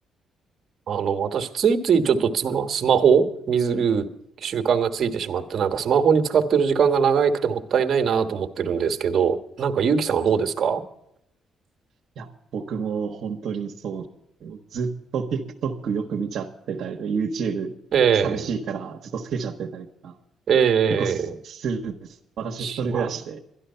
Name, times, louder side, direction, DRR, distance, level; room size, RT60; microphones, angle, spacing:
voice 1, 0.9-4.1 4.4-10.8 17.9-18.5 20.5-21.3 22.6-23.1, right 7 dB, 55° right, 7 dB, 1.4 m, -21 dB
voice 2, 12.5-14.1 14.4-17.7 18.2-20.2 21.0-23.4, right 5 dB, 70° right, 1 dB, 1.1 m, -30 dB
12.0 x 11.5 x 5.6 m, 0.77 s
cardioid pair, 90°, 0 cm